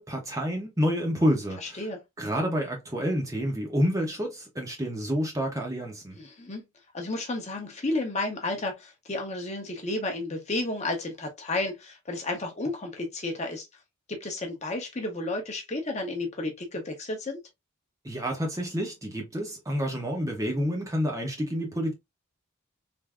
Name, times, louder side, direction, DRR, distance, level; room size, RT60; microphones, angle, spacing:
voice 1, 0.0-1.8 2.2-6.2 18.0-21.9, equal, 15° right, 0.6 m, -28 dB
voice 2, 1.6-2.0 6.2-6.6 6.9-13.7 14.1-17.4, left 2 dB, 30° left, 0.7 m, -32 dB
3.4 x 2.6 x 2.3 m
head